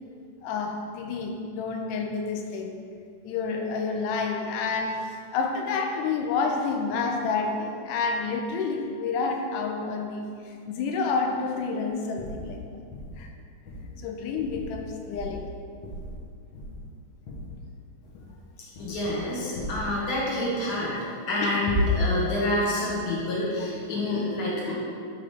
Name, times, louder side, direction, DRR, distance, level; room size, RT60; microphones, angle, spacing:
voice 1, 0.4-2.7 3.2-12.6 13.2-13.3 14.0-15.5 21.4-21.6, left 4 dB, 80° left, 3 dB, 2.0 m, -29 dB
sound 1, 12.2-12.6 12.9-13.2 13.6-13.9 14.4-14.8 15.1-15.5 15.8-16.2 16.5-16.9 17.3-17.5 18.0-18.4 18.7-19.2 19.5-19.9 21.7-22.2, left 2 dB, 65° left, 1.7 m, -32 dB
voice 2, 18.8-21.0 21.3-24.7, left 1 dB, 45° left, -7 dB, 1.4 m, -28 dB
7.3 x 3.7 x 4.9 m, 2.3 s
omnidirectional pair, 3.8 m